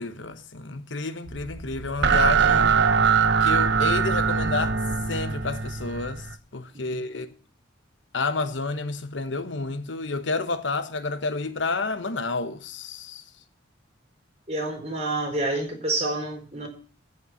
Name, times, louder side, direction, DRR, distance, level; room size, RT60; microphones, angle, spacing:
voice 1, 0.0-2.8 3.4-4.8 5.1-6.3 6.5-7.3 8.1-13.2, left 3 dB, 80° left, 1.2 m, -30 dB
sound 1, 1.3-6.3, right 6 dB, 65° right, 1.0 m, -22 dB
voice 2, 14.5-16.7, right 2 dB, 35° right, 4.4 m, -28 dB
15.0 x 5.6 x 8.2 m
head